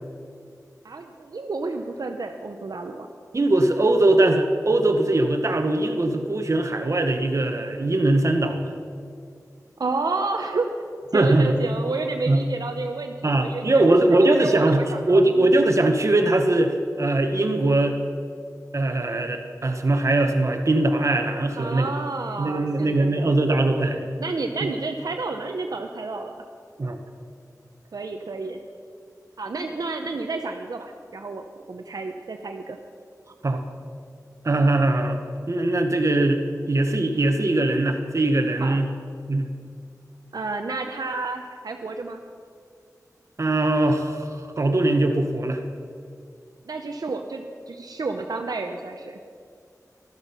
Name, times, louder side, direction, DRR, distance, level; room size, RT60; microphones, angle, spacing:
voice 1, 0.8-3.1 9.8-10.7 11.1-15.6 21.6-23.3 24.2-26.4 27.9-28.6 29.4-32.8 38.6-38.8 40.3-42.2 46.6-49.2, right 3 dB, 80° right, 4 dB, 0.7 m, -30 dB
voice 2, 3.3-8.7 11.1-11.5 12.3-12.4 13.2-18.0 18.7-21.9 22.4-24.1 24.6-24.7 26.8-27.0 33.4-33.6 34.4-38.9 39.3-39.5 43.4-45.6, right 2 dB, 50° right, 4 dB, 1.0 m, -21 dB
13.0 x 12.0 x 5.5 m, 2.2 s
wide cardioid pair, 80°, 7 cm